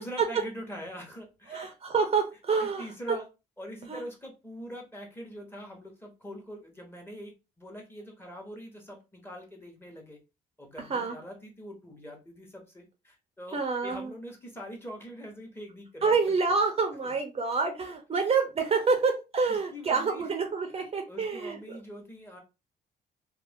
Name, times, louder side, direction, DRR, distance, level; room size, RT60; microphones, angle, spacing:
voice 1, 0.0-1.7 2.6-3.3 3.6-10.2 10.6-16.3 17.0-17.1 19.5-20.2 20.8-22.4, equal, 15° left, 1 dB, 1.0 m, -43 dB
voice 2, 1.5-3.2 3.9-4.0 10.8-11.2 13.5-14.1 16.0-21.8, right 4 dB, 35° right, 4 dB, 0.6 m, -28 dB
2.5 x 2.1 x 3.3 m, 0.28 s
cardioid pair, 90°, 17 cm